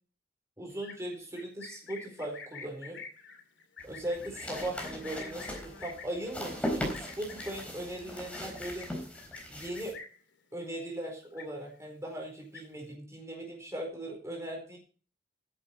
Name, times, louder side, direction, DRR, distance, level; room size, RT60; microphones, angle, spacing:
voice 1, 0.6-3.0 3.8-8.9 9.5-10.0 10.5-14.8, right 1 dB, 15° right, 0 dB, 4.5 m, -39 dB
Livestock farm animals working animals, 0.7-10.3 10.7-11.0 11.2-11.9 12.2-12.9, left 5 dB, 80° left, 2.5 m, -48 dB
sound 1, 3.8-9.9, equal, 5° left, 4.0 m, -39 dB
14.0 x 11.0 x 4.7 m, 0.40 s
head